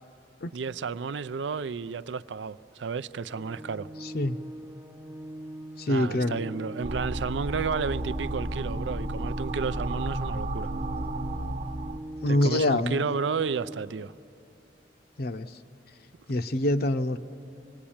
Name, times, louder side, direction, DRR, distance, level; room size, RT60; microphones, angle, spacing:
voice 1, 0.5-3.9 5.9-10.7 12.3-14.1, right 5 dB, 85° right, 0.5 m, -32 dB
Organ, 3.3-14.3, right 1 dB, 10° right, 0.5 m, -43 dB
voice 2, 4.0-4.4 5.8-6.4 12.2-13.0 15.2-15.5 16.3-17.2, left 1 dB, 60° left, 0.7 m, -25 dB
sound 1, 6.8-12.0, right 1 dB, 50° right, 0.9 m, -32 dB
26.5 x 20.5 x 8.7 m
head